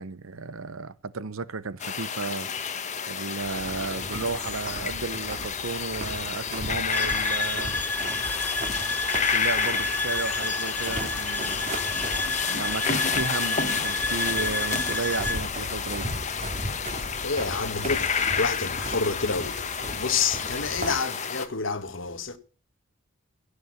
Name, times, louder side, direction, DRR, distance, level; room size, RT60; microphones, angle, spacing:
voice 1, 0.0-2.5 3.1-7.8 9.3-11.6 12.4-16.1, right 4 dB, 70° right, 0.8 m, -33 dB
sound 1, 1.8-21.5, left 6 dB, 35° left, 1.3 m, -30 dB
sound 2, 3.4-21.0, right 1 dB, 35° right, 2.6 m, -38 dB
sound 3, 6.9-15.4, left 2 dB, 10° left, 0.6 m, -30 dB
voice 2, 17.0-22.4, left 5 dB, 60° left, 1.4 m, -29 dB
17.0 x 6.7 x 7.2 m
head